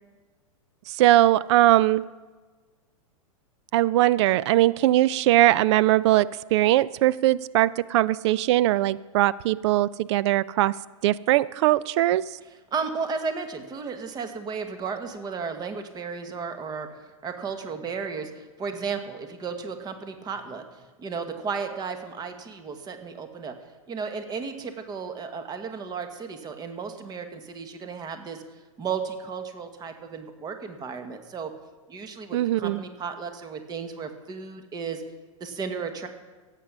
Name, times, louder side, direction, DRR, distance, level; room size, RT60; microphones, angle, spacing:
voice 1, 0.9-2.0 3.7-10.7 11.0-12.2 32.3-32.8, right 15 dB, 55° right, 20 dB, 0.4 m, -20 dB
voice 2, 12.4-16.9 17.2-23.5 23.9-28.4 28.8-31.5 31.9-35.0 35.4-36.1, right 5 dB, 25° right, 7 dB, 1.4 m, -34 dB
16.5 x 8.3 x 6.1 m, 1.4 s
hypercardioid pair, 125°, 17 cm